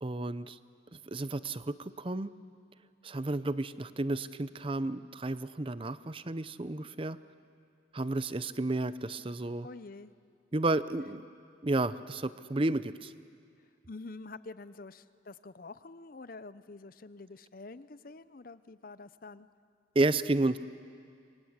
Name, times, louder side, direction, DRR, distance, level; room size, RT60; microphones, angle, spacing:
voice 1, 0.0-0.6 1.1-2.3 3.0-7.2 7.9-9.7 10.5-11.2 11.6-13.1 19.9-20.6, right 2 dB, 30° right, 15 dB, 0.6 m, -31 dB
voice 2, 9.6-10.1 13.9-19.5, left 3 dB, 45° left, 15 dB, 0.7 m, -47 dB
27.5 x 24.0 x 8.1 m, 2.4 s
head